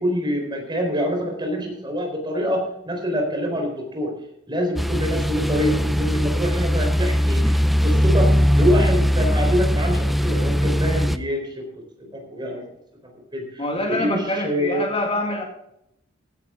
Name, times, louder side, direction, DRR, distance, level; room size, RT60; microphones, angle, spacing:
voice 1, 0.0-4.1 4.5-11.7 12.0-12.6 13.3-14.9, equal, 25° right, 2 dB, 4.1 m, -26 dB
sound 1, 4.8-11.2, equal, ahead, 0.5 m, -20 dB
voice 2, 13.6-15.4, left 1 dB, 30° left, 2 dB, 2.1 m, -25 dB
16.0 x 11.0 x 3.7 m, 0.79 s
head